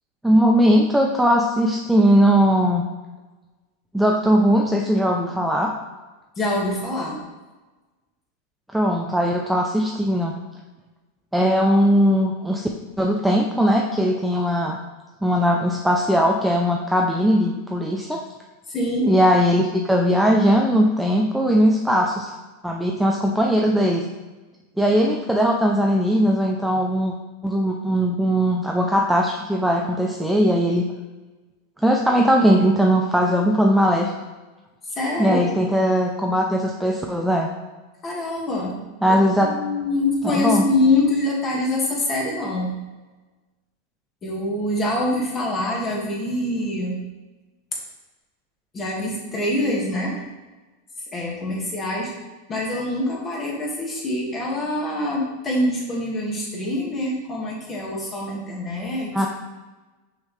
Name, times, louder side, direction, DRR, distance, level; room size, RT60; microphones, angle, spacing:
voice 1, 0.2-2.8 3.9-5.7 8.7-10.3 11.3-12.7 13.0-14.8 15.2-18.2 19.1-22.3 22.6-24.0 24.8-27.1 27.4-30.9 31.8-34.1 35.2-37.5 39.0-39.5 40.2-40.6 59.1-59.3, equal, 5° right, 0 dB, 0.4 m, -19 dB
voice 2, 6.4-7.2 18.7-19.1 35.0-35.4 38.0-38.7 39.1-42.7 44.2-47.0 48.7-50.2 51.1-52.1 52.5-59.1, left 2 dB, 25° left, -3 dB, 1.8 m, -24 dB
6.1 x 5.6 x 3.2 m, 1.2 s
supercardioid pair, 145°, 0 cm